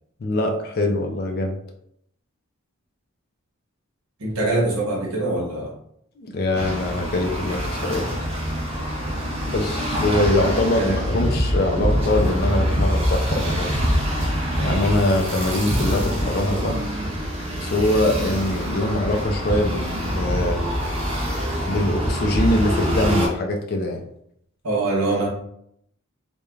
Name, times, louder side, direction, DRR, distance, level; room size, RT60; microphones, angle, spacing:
voice 1, 0.2-1.6 6.2-8.1 9.4-13.8 14.6-16.8 17.6-20.6 21.6-24.0, left 1 dB, 45° left, 3 dB, 0.4 m, -23 dB
voice 2, 4.2-5.7 9.7-9.8 10.7-11.0 24.6-25.3, right 2 dB, 80° right, -3 dB, 0.9 m, -23 dB
sound 1, 6.5-23.3, equal, 25° right, 0.5 m, -24 dB
3.1 x 2.1 x 2.3 m, 0.71 s
head